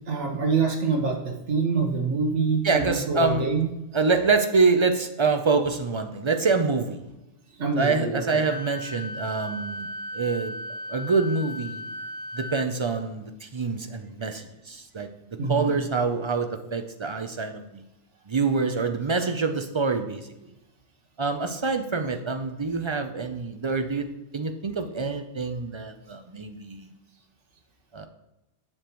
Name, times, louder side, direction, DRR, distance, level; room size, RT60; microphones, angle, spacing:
voice 1, 0.1-3.7 7.6-8.4 15.4-15.7, right 4 dB, 90° right, 3 dB, 1.4 m, -25 dB
voice 2, 2.6-3.5 3.9-7.0 7.8-9.9 10.1-10.5 10.9-11.8 12.4-15.1 15.5-17.8 18.3-20.2 21.2-24.1 24.3-26.9 27.9-28.1, right 4 dB, 45° right, 6 dB, 0.3 m, -26 dB
Wind instrument woodwind instrument, 8.4-12.7, left 1 dB, 65° left, 0.3 m, -36 dB
7.4 x 6.9 x 3.0 m, 0.98 s
omnidirectional pair, 1.2 m